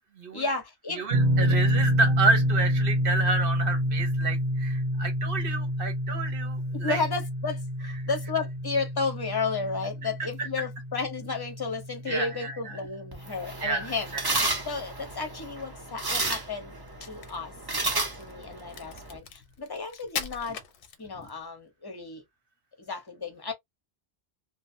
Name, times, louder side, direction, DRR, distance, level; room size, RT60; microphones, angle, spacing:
voice 1, 0.3-1.1 1.4-1.6 6.8-16.7 17.0-17.5 17.9-20.6 21.0-22.2 22.8-23.5, left 4 dB, 25° left, 0.8 m, -33 dB
voice 2, 0.9-7.0 10.4-10.5 12.1-12.5 13.6-14.2, right 3 dB, 60° right, 1.1 m, -29 dB
sound 1, 1.1-14.0, equal, 85° right, 0.9 m, -28 dB
sound 2, 13.1-19.2, right 2 dB, 25° right, 0.6 m, -32 dB
Crack, 16.8-21.4, left 6 dB, 65° left, 0.7 m, -40 dB
2.5 x 2.2 x 2.5 m
omnidirectional pair, 1.1 m